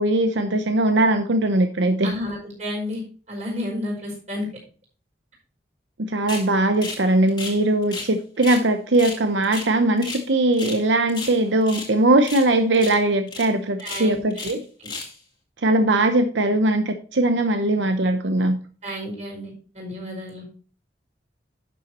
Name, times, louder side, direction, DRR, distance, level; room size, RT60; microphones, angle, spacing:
voice 1, 0.0-2.2 6.0-14.6 15.6-18.6, right 1 dB, 90° right, 7 dB, 0.8 m, -20 dB
voice 2, 2.0-3.0 3.3-4.5 13.8-14.2 18.8-20.4, left 1 dB, 40° right, -1 dB, 5.2 m, -31 dB
sound 1, 6.3-6.5 6.8-7.0 7.3-8.1 8.4-8.6 8.9-10.3 10.5-10.8 11.1-11.9 12.2-12.5 12.7-13.0 13.3-13.5 13.8-14.6 14.8-15.2, left 3 dB, 25° left, 2.2 m, -34 dB
11.0 x 6.9 x 3.1 m, 0.39 s
head